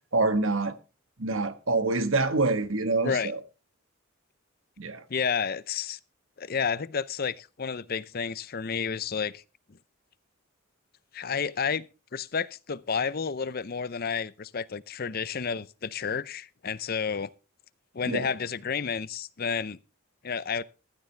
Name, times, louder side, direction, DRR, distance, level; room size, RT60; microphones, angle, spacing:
voice 1, 0.1-0.7 1.2-3.4 4.8-5.0 18.0-18.3, right 3 dB, 75° right, 1.4 m, -26 dB
voice 2, 5.1-6.0 6.4-9.4 11.1-11.9 12.1-17.3 17.9-19.8 20.2-20.6, left 6 dB, 45° left, 0.6 m, -31 dB
15.0 x 13.0 x 3.3 m
head